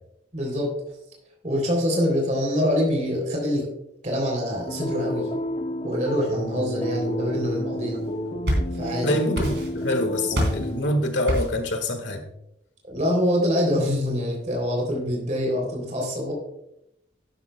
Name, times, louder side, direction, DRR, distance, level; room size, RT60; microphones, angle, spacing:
voice 1, 0.3-0.7 1.4-3.7 4.0-5.3 5.8-8.0 8.7-9.2 12.9-16.3, equal, 40° right, 0 dB, 3.3 m, -25 dB
sound 1, 4.7-10.8, left 1 dB, 30° left, 0.7 m, -30 dB
sound 2, 8.1-9.0 9.3-9.9 10.3-10.7 11.3-11.7, equal, 65° right, 3.9 m, -26 dB
voice 2, 9.0-12.2, left 1 dB, 80° left, 6 dB, 1.6 m, -25 dB
12.0 x 10.5 x 2.3 m, 0.81 s
head